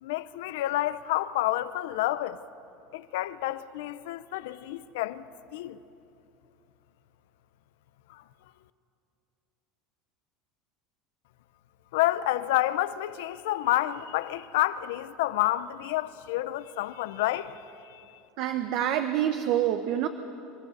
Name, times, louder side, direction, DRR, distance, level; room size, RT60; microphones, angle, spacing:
voice 1, 0.0-2.4 2.9-5.2 5.5-5.8 8.1-8.2 11.9-18.0, left 15 dB, 90° left, 0.6 m, -29 dB
voice 2, 18.4-20.1, right 11 dB, 60° right, 0.8 m, -26 dB
26.0 x 13.5 x 8.0 m
cardioid pair, 145°, 0 cm